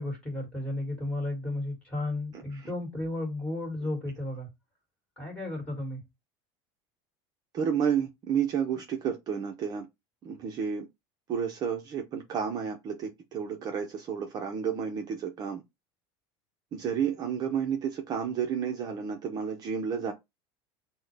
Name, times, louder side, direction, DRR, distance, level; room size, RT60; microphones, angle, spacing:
voice 1, 0.0-4.5 5.2-6.0, left 2 dB, 10° left, 2.2 m, -33 dB
voice 2, 7.5-9.9 10.2-10.9 11.3-15.6 16.7-20.1, right 7 dB, 35° right, 0.7 m, -31 dB
6.0 x 2.2 x 3.3 m
cardioid pair, 150°, 12 cm